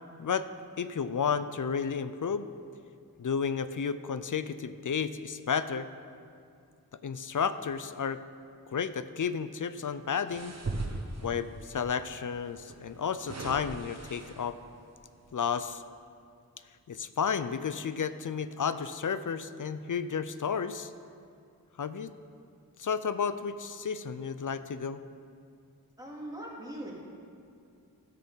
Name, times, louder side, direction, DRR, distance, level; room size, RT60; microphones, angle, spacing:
voice 1, 0.8-2.5 3.2-5.9 7.0-8.2 8.7-10.6 11.2-14.6 15.3-15.8 16.9-20.9 21.8-22.1 22.8-25.0, left 6 dB, 60° left, 12 dB, 0.5 m, -32 dB
sound 1, 10.3-11.6 12.6-14.7 15.2-15.4, right 2 dB, 45° right, 1.0 m, -39 dB
voice 2, 26.0-26.9, right 1 dB, 10° right, -4 dB, 2.3 m, -40 dB
13.0 x 6.7 x 5.5 m, 2.4 s
wide cardioid pair, 60°, 36 cm